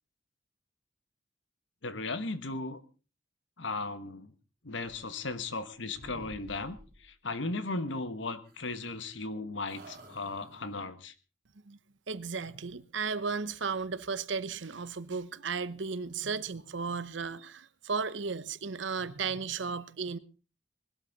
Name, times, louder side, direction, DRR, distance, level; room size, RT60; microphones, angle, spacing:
voice 1, 1.8-2.8 3.6-4.3 4.6-11.1, left 3 dB, 70° left, 1.3 m, -36 dB
sound 1, 4.8-5.7 5.9-7.1 8.4-9.3 9.7-10.9, right 1 dB, 50° right, 3.0 m, -53 dB
voice 2, 12.1-20.2, right 5 dB, 70° right, 0.8 m, -35 dB
20.5 x 12.5 x 4.0 m
head